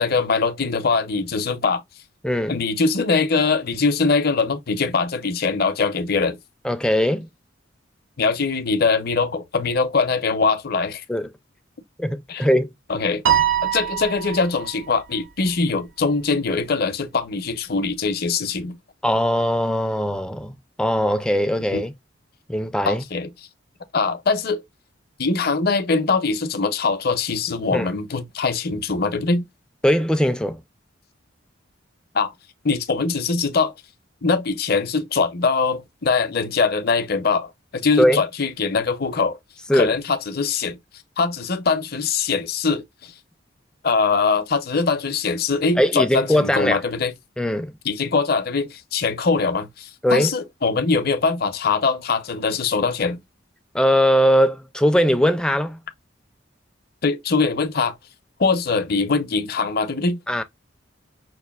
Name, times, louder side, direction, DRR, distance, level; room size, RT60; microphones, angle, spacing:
voice 1, 0.0-1.8 2.5-6.4 8.2-11.0 12.3-12.4 12.9-13.2 13.6-18.8 21.7-21.9 22.9-23.3 23.9-24.6 25.2-29.5 32.1-32.3 32.6-33.7 34.2-39.4 39.7-40.8 41.2-43.1 43.8-47.1 47.8-53.2 57.0-58.0 58.4-60.2, left 4 dB, 50° left, 0.6 m, -22 dB
voice 2, 2.2-2.6 6.6-7.3 11.1-11.3 12.0-12.7 19.0-21.9 22.5-23.0 27.7-27.9 29.8-30.6 38.0-38.2 39.7-39.9 45.8-46.8 47.4-47.7 50.0-50.3 53.7-55.8 60.3-60.4, equal, 5° left, 0.3 m, -20 dB
Piano, 13.3-14.8, right 10 dB, 85° right, 0.8 m, -22 dB
5.9 x 2.4 x 2.3 m
head